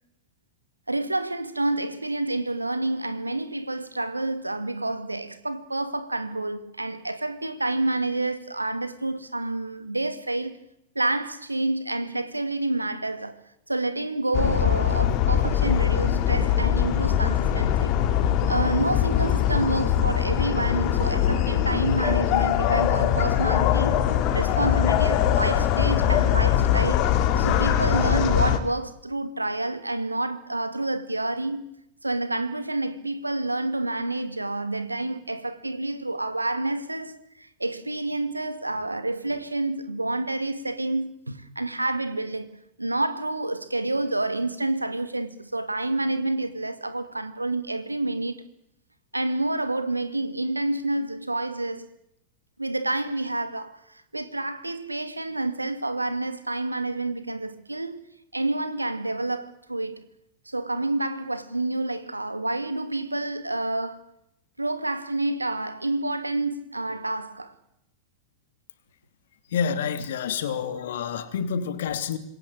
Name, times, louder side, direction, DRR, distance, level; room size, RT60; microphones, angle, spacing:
voice 1, 0.9-10.6 11.0-13.4 13.7-18.0 18.5-24.0 24.3-27.1 27.4-31.6 32.0-48.4 49.1-51.9 52.6-58.0 58.3-60.0 60.5-64.0 64.6-67.5, right 2 dB, 85° right, 2.1 m, -28 dB
sound 1, 14.3-28.6, left 10 dB, 40° left, 3.1 m, -22 dB
voice 2, 69.5-72.2, left 7 dB, 60° left, 2.8 m, -28 dB
26.5 x 21.5 x 8.8 m
figure-of-eight pair, 90°, 0 cm